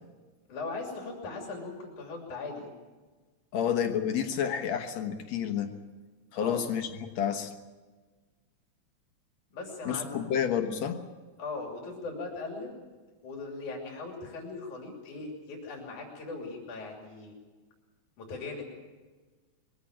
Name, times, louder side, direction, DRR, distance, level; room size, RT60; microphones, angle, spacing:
voice 1, 0.5-2.7 6.3-6.7 9.5-10.2 11.4-12.8 13.2-17.3 18.2-18.6, left 3 dB, 90° left, 0 dB, 4.5 m, -39 dB
voice 2, 3.5-5.7 6.3-7.5 9.9-11.0, left 8 dB, 65° left, 5 dB, 2.4 m, -30 dB
22.0 x 16.5 x 8.7 m, 1.3 s
omnidirectional pair, 3.4 m